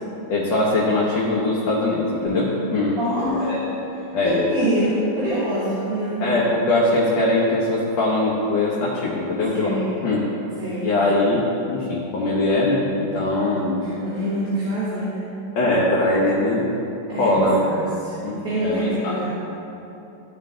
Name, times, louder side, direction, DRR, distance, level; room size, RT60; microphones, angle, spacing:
voice 1, 0.3-3.0 3.4-3.6 4.1-4.5 6.2-9.8 10.0-10.2 10.8-13.8 15.6-16.7 17.1-17.6 18.2-19.1, left 2 dB, 85° left, -5 dB, 1.8 m, -21 dB
sound 1, 2.2-6.9, left 3 dB, 60° left, 2.2 m, -32 dB
voice 2, 3.0-3.5 4.2-6.3 9.5-10.0 10.6-10.9 13.5-15.3 17.1-19.3, right 1 dB, 55° right, -9 dB, 1.9 m, -26 dB
13.5 x 4.5 x 3.8 m, 2.9 s
omnidirectional pair, 2.0 m